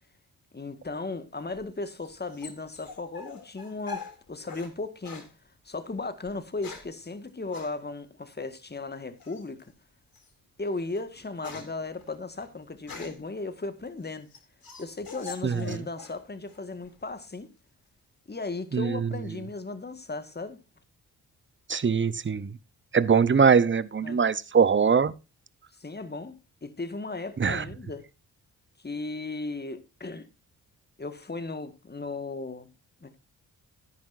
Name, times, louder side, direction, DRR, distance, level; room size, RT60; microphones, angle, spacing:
voice 1, 0.5-5.2 5.7-9.7 10.6-14.3 14.8-17.5 18.3-20.6 24.0-24.2 25.8-28.0 28.8-30.3 31.0-32.7 33.0-33.2, left 3 dB, 25° left, 1.8 m, -36 dB
sound 1, 1.4-4.7 5.0-5.3 6.3-7.0 7.5-7.7 9.2-9.6 10.1-10.3 10.7-13.3 13.9-16.2 16.5-17.1, left 5 dB, 50° left, 3.7 m, -44 dB
voice 2, 15.4-15.8 18.7-19.0 21.7-22.5 22.9-25.1 27.4-27.6, right 6 dB, 25° right, 0.9 m, -22 dB
13.0 x 10.5 x 2.7 m
hypercardioid pair, 40°, 43 cm